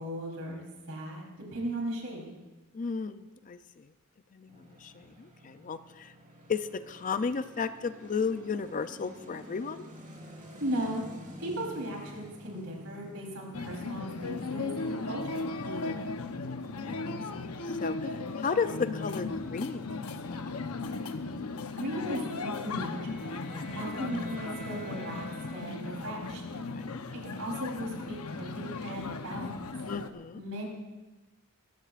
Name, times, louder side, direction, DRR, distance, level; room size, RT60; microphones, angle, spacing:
voice 1, 0.0-2.3 10.6-11.0 11.4-15.5 21.8-23.3 23.8-25.2 25.5-26.4 27.1-29.6 30.4-30.7, right 1 dB, 75° right, -1 dB, 3.7 m, -37 dB
voice 2, 2.7-3.9 4.3-6.1 6.5-9.9 15.7-17.5 17.8-19.9 20.3-20.8 23.5-23.6 26.6-27.0 29.9-30.4, left 5 dB, 35° left, 11 dB, 0.4 m, -35 dB
sound 1, 4.5-18.7, equal, 35° right, 3.8 m, -51 dB
sound 2, 13.5-30.1, left 3 dB, 75° left, 0.9 m, -36 dB
sound 3, 22.9-26.1, right 3 dB, 5° left, 4.0 m, -48 dB
22.5 x 15.5 x 2.5 m, 1.1 s
head